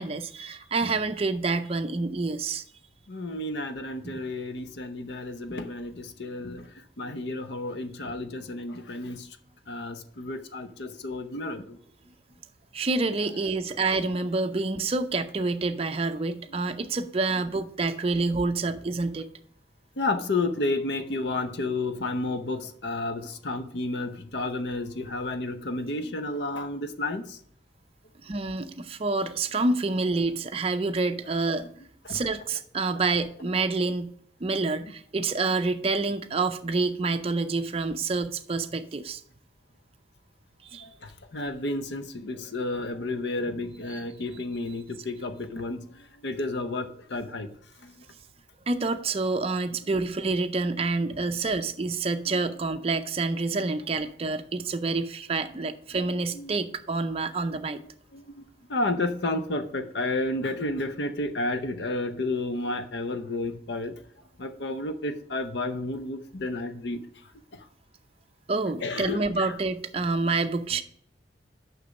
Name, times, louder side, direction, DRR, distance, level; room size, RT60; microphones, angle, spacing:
voice 1, 0.0-2.6 4.0-4.2 12.7-19.3 28.2-31.7 32.1-34.1 34.4-39.2 40.6-40.9 43.9-44.0 48.7-57.8 68.5-70.8, right 3 dB, 30° right, 7 dB, 0.5 m, -28 dB
voice 2, 3.1-9.3 9.7-11.8 20.0-27.4 31.6-31.7 32.0-32.2 40.8-47.5 47.8-48.0 52.3-52.4 56.3-56.6 57.7-57.8 58.1-63.9 64.4-67.0 68.8-69.5, left 2 dB, 65° left, 9 dB, 0.7 m, -31 dB
6.7 x 5.9 x 5.2 m, 0.63 s
head